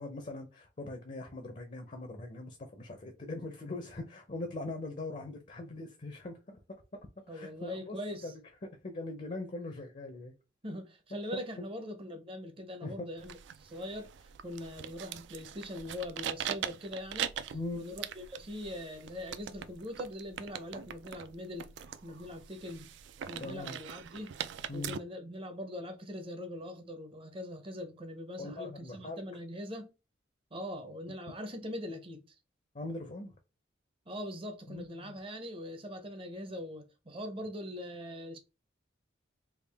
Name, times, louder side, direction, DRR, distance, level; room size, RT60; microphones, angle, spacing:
voice 1, 0.0-8.0 8.2-10.3 11.1-11.2 12.8-13.1 17.5-17.9 23.4-23.8 24.7-25.0 28.4-29.2 32.7-33.3 34.7-35.1, left 2 dB, 40° left, 0.5 m, -41 dB
voice 2, 7.3-8.3 10.6-13.3 13.6-21.7 22.0-23.0 23.3-24.3 24.7-29.9 30.5-32.4 34.1-38.4, left 1 dB, 30° right, 0.6 m, -42 dB
sound 1, 13.2-25.0, right 9 dB, 70° right, 0.3 m, -42 dB
3.5 x 2.4 x 3.4 m
head